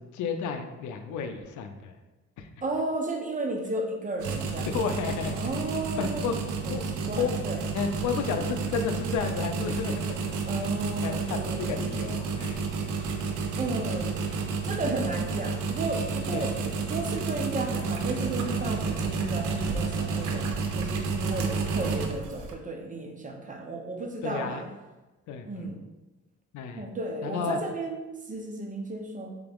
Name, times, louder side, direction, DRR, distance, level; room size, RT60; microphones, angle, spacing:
voice 1, 0.0-1.9 2.4-2.5 4.7-5.4 6.0-6.4 6.7-6.8 7.1-7.3 7.7-10.2 11.0-12.7 16.3-16.5 21.3-21.5 24.2-24.7 25.3-25.7 26.5-26.8 27.2-27.6, left 6 dB, 75° left, 6 dB, 0.5 m, -32 dB
voice 2, 2.6-4.7 5.3-6.3 6.6-7.6 10.5-11.8 13.6-14.2 14.6-16.5 16.9-24.6 25.5-25.8 26.8-29.4, right 2 dB, 25° right, 2 dB, 0.8 m, -33 dB
sound 1, 4.2-22.5, right 4 dB, 90° right, 0.6 m, -31 dB
3.9 x 3.4 x 3.5 m, 1.1 s
cardioid pair, 90°, 30 cm